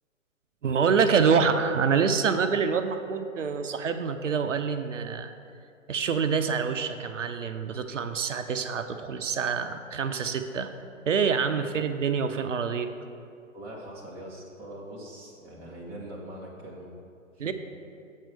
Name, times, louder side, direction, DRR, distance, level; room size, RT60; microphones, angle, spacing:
voice 1, 0.6-5.3 5.9-10.7 11.1-12.9 17.4-17.5, right 6 dB, 65° right, 9 dB, 0.6 m, -26 dB
voice 2, 13.5-16.9 17.4-17.5, right 1 dB, 5° right, -5 dB, 0.5 m, -42 dB
7.3 x 4.5 x 6.6 m, 2.4 s
figure-of-eight pair, 120°, 39 cm